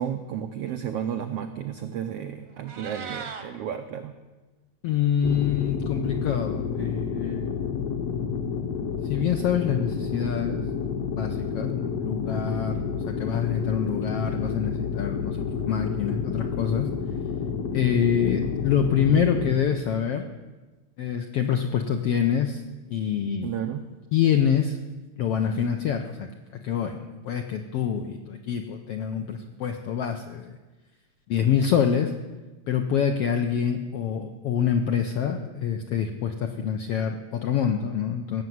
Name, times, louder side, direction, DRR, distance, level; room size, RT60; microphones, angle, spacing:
voice 1, 0.0-4.2 23.4-23.8, right 9 dB, 80° right, 7 dB, 1.3 m, -32 dB
Meow, 2.5-3.4, right 6 dB, 55° right, 1.2 m, -38 dB
voice 2, 4.8-7.5 9.0-10.6 11.1-16.9 17.7-20.3 21.0-22.6 22.9-23.6 24.1-24.8 25.2-30.6 31.3-32.1 32.7-38.4, left 8 dB, 80° left, 5 dB, 1.3 m, -26 dB
sound 1, 5.2-19.6, left 6 dB, 60° left, 1.9 m, -30 dB
17.5 x 7.3 x 9.3 m, 1.2 s
omnidirectional pair, 3.7 m